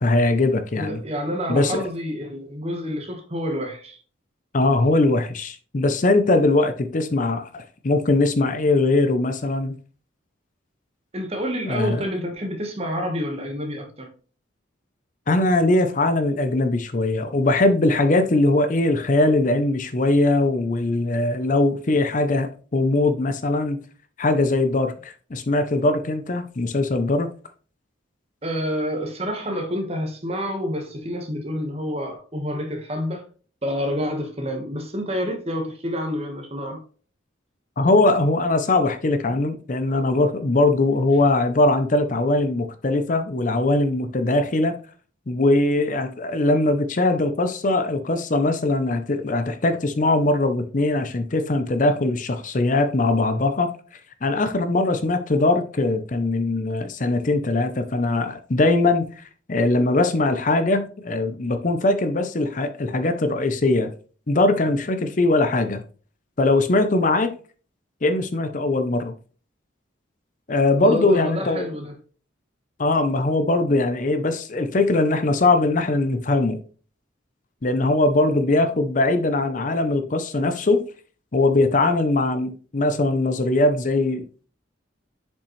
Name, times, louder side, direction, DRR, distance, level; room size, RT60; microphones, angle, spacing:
voice 1, 0.0-1.0 1.5-1.8 4.5-9.7 11.6-12.0 15.3-23.8 24.2-27.3 37.8-44.8 45.3-53.7 54.2-59.2 59.5-63.9 64.3-65.8 66.4-67.3 68.0-69.1 70.5-71.6 72.8-76.6 77.6-80.8 81.3-84.5, left 2 dB, 40° left, 0.6 m, -21 dB
voice 2, 0.7-4.0 11.1-14.1 28.4-33.3 33.6-36.8 70.7-72.0, equal, 30° right, 1.3 m, -28 dB
7.0 x 5.3 x 3.1 m
head